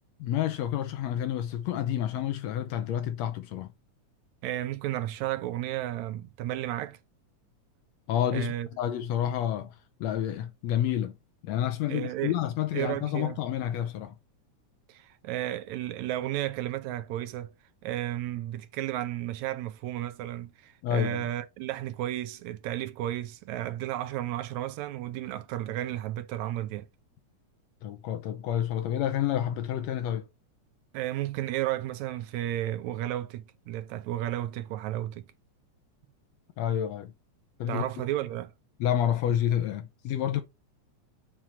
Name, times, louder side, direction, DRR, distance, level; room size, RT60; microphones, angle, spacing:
voice 1, 0.2-3.7 8.1-9.8 10.0-11.1 11.4-14.2 20.8-21.3 27.8-30.3 36.6-37.1 37.6-38.1 38.8-40.4, left 10 dB, 75° left, 1.8 m, -29 dB
voice 2, 4.4-7.0 8.3-8.7 11.9-12.4 12.7-13.4 14.9-17.5 17.8-26.9 30.9-35.3 37.7-38.5, right 13 dB, 80° right, 1.8 m, -33 dB
7.6 x 3.6 x 4.4 m
omnidirectional pair, 3.4 m